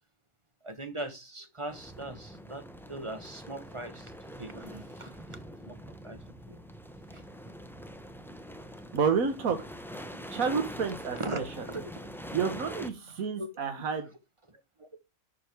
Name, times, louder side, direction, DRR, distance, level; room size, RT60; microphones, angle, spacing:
voice 1, 0.6-5.8 6.0-6.2 6.5-6.6 7.1-7.2 11.2-12.1 13.4-13.5 14.5-14.9, right 2 dB, 25° right, 1.2 m, -40 dB
sound 1, 1.7-12.9, equal, ahead, 0.8 m, -44 dB
voice 2, 8.9-9.6 10.3-11.6 12.3-14.1, right 6 dB, 85° right, 1.5 m, -30 dB
11.5 x 5.1 x 4.8 m
omnidirectional pair, 1.4 m